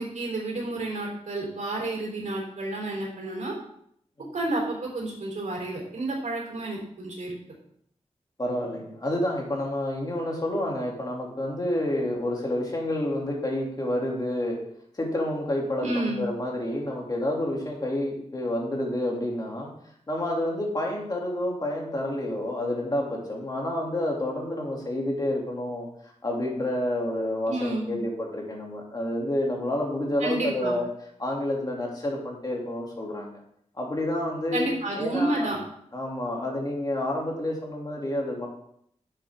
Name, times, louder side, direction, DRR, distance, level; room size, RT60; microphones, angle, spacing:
voice 1, 0.0-3.6 4.3-7.4 15.8-16.2 27.5-28.0 30.2-30.8 34.5-35.6, right 2 dB, 85° right, -1 dB, 3.6 m, -30 dB
voice 2, 8.4-14.6 14.9-19.7 20.1-25.9 26.2-30.9 31.2-33.4 33.7-34.7 34.9-35.5 35.9-38.5, left 1 dB, 30° left, -1 dB, 2.6 m, -29 dB
10.5 x 7.6 x 3.6 m, 0.69 s
wide cardioid pair, 130°, 12 cm